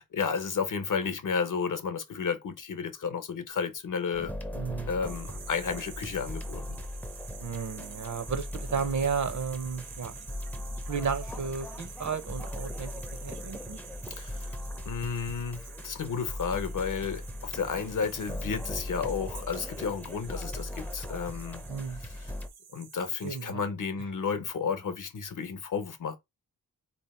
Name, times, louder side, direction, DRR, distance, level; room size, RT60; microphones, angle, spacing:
voice 1, 0.0-4.3 4.9-6.8 14.2-14.6 14.8-21.6 22.0-22.3 22.7-26.2, left 6 dB, 55° left, 0.8 m, -32 dB
sound 1, 4.1-22.5, left 1 dB, 5° left, 0.5 m, -39 dB
voice 2, 4.5-4.9 7.4-10.1 10.9-12.9 13.2-13.8 21.7-22.0 23.2-23.6, right 6 dB, 55° right, 0.7 m, -33 dB
sound 2, 5.0-23.5, right 7 dB, 85° right, 0.7 m, -49 dB
3.9 x 2.8 x 4.2 m
wide cardioid pair, 175°, 36 cm